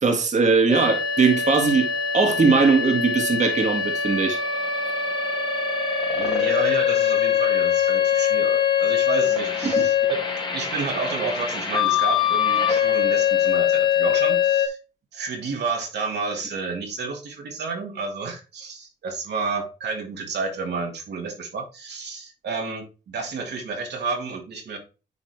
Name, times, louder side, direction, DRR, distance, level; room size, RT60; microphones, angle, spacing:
voice 1, 0.0-1.9 2.1-4.4 9.6-9.9, right 4 dB, 35° right, 1.7 m, -20 dB
sound 1, 0.7-14.7, left 8 dB, 25° left, 1.6 m, -23 dB
voice 2, 6.1-10.2 10.5-14.8 15.1-24.8, right 4 dB, 60° right, 1.7 m, -30 dB
9.8 x 3.9 x 3.2 m
cardioid pair, 90°, 20 cm